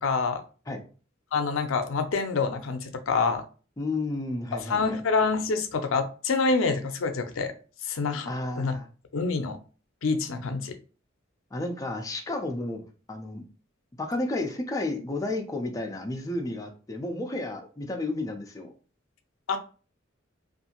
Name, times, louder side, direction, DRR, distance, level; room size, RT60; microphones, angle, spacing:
voice 1, 0.0-0.4 1.3-3.4 4.7-7.5 7.9-8.3 8.6-8.7 9.1-9.6 10.0-10.7 19.5-19.6, left 4 dB, 90° left, 8 dB, 0.5 m, -26 dB
voice 2, 3.8-5.0 8.3-8.9 11.5-13.4 14.0-18.7, left 2 dB, 15° left, 2 dB, 0.4 m, -32 dB
2.6 x 2.4 x 2.8 m, 0.36 s
head